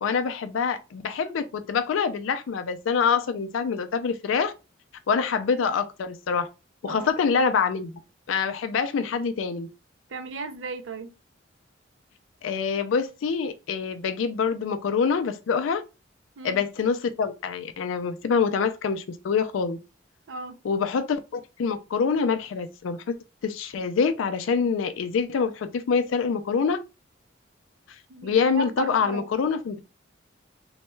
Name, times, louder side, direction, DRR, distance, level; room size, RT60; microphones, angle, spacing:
voice 1, 0.0-4.5 5.1-6.5 6.8-7.9 8.3-9.7 12.4-15.8 16.4-19.8 20.6-23.2 23.4-26.8 28.2-29.8, left 5 dB, 90° left, 0.4 m, -25 dB
voice 2, 10.1-11.1 16.4-16.6 20.3-20.6 28.1-29.3, right 3 dB, 70° right, 0.5 m, -35 dB
3.1 x 2.2 x 3.1 m
head